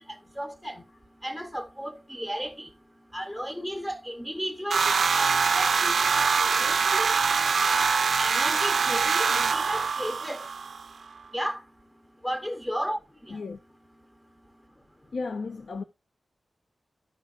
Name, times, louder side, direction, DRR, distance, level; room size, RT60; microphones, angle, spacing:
voice 1, 0.4-0.8 1.2-2.7 3.1-7.1 8.2-10.5 11.3-11.6 12.2-13.0 13.3-13.4, equal, 10° left, 0.9 m, -34 dB
sound 1, 4.7-10.9, right 5 dB, 85° right, 0.4 m, -24 dB
voice 2, 13.3-13.6 15.1-15.8, left 4 dB, 80° left, 0.6 m, -34 dB
14.5 x 5.2 x 2.5 m
wide cardioid pair, 130°, 0 cm